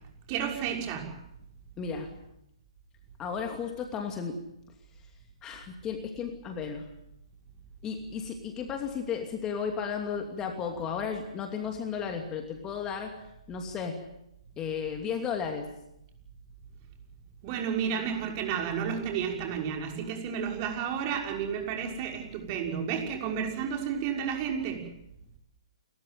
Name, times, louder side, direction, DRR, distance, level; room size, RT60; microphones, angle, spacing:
voice 1, 0.3-1.1 17.4-24.8, right 7 dB, 35° right, 2 dB, 6.1 m, -31 dB
voice 2, 1.8-2.1 3.2-4.4 5.4-6.9 7.8-13.1 13.5-14.0 14.6-15.7, left 6 dB, 20° left, 4 dB, 2.7 m, -34 dB
29.0 x 14.0 x 9.4 m, 0.81 s
hypercardioid pair, 140°, 3 cm